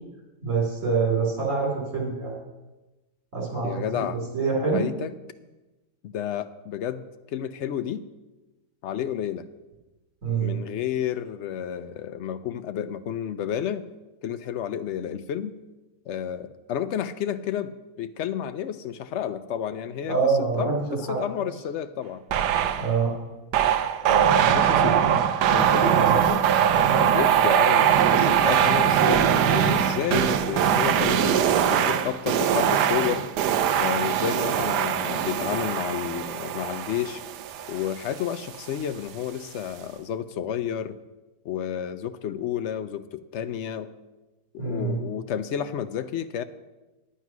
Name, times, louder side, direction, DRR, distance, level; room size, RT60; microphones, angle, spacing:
voice 1, 0.4-2.4 3.3-4.8 10.2-10.6 20.1-21.5 22.8-23.1 44.6-45.0, right 4 dB, 50° right, -2 dB, 3.8 m, -26 dB
voice 2, 3.6-4.2 4.7-5.1 6.0-8.0 8.8-9.5 10.4-13.8 14.2-15.5 16.1-17.7 18.0-20.2 20.6-22.2 24.1-25.1 25.5-26.4 26.7-33.3 33.8-37.2 37.7-41.0 41.4-43.9 44.5-46.4, left 9 dB, 80° left, 11 dB, 0.6 m, -31 dB
sound 1, 22.3-22.9 23.5-38.2, right 9 dB, 80° right, 1.2 m, -22 dB
10.0 x 9.3 x 6.0 m, 1.1 s
omnidirectional pair, 1.8 m